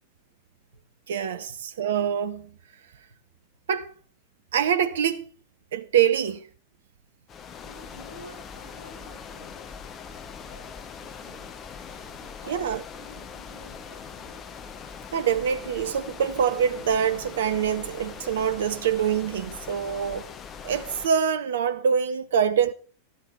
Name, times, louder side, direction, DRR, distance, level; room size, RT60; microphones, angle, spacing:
voice 1, 1.1-2.5 3.7-3.9 4.5-5.3 5.7-6.4 12.5-12.8 15.1-20.3 20.6-22.7, right 8 dB, 60° right, 0.9 m, -25 dB
sound 1, 7.3-21.1, left 6 dB, 25° left, 1.3 m, -41 dB
voice 2, 7.6-9.6 10.4-11.5 12.2-12.6 13.0-14.4, equal, 80° right, 6.7 m, -50 dB
13.5 x 13.5 x 4.7 m
figure-of-eight pair, 90°, 0 cm